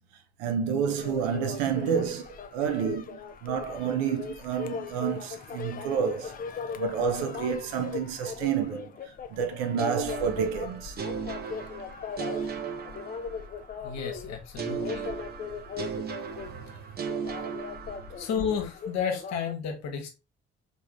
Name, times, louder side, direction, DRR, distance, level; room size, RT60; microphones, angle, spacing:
voice 1, 0.4-6.3 6.8-8.9 9.3-11.0 16.4-16.5, right 7 dB, 70° right, 0.7 m, -29 dB
sound 1, 1.0-19.5, left 6 dB, 25° left, 0.4 m, -39 dB
sound 2, 9.8-13.7 14.6-18.4, right 7 dB, 30° right, 0.6 m, -36 dB
voice 2, 13.8-15.1 16.6-16.8 18.2-20.1, left 7 dB, 55° left, 1.0 m, -32 dB
3.5 x 2.8 x 3.0 m
figure-of-eight pair, 45°, 33 cm